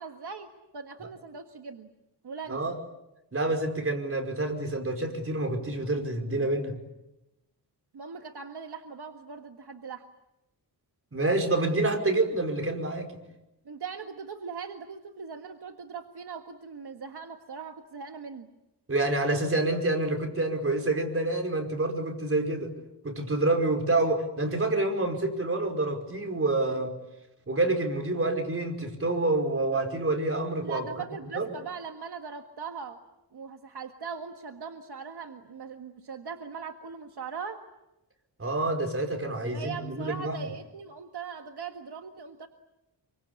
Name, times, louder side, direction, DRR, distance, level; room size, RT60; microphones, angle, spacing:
voice 1, 0.0-1.9 2.2-2.6 7.9-10.1 13.7-18.5 30.6-33.0 33.3-37.6 39.5-42.5, right 6 dB, 70° right, 5 dB, 1.7 m, -40 dB
voice 2, 3.3-6.8 11.1-13.1 18.9-22.7 23.0-26.9 27.5-30.9 31.3-31.5 38.4-40.4, right 2 dB, 35° right, 3 dB, 5.2 m, -27 dB
27.0 x 24.5 x 8.5 m, 0.94 s
wide cardioid pair, 115°, 41 cm